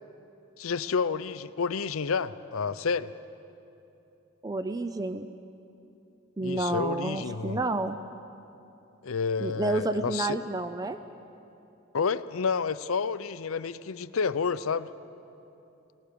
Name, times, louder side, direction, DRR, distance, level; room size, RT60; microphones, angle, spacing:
voice 1, 0.6-3.1 6.4-7.6 9.0-10.4 11.9-14.9, left 5 dB, 75° left, 14 dB, 0.6 m, -30 dB
voice 2, 4.4-5.3 6.4-8.0 9.4-11.0, right 2 dB, 15° right, 10 dB, 0.4 m, -30 dB
23.5 x 19.0 x 6.8 m, 2.9 s
head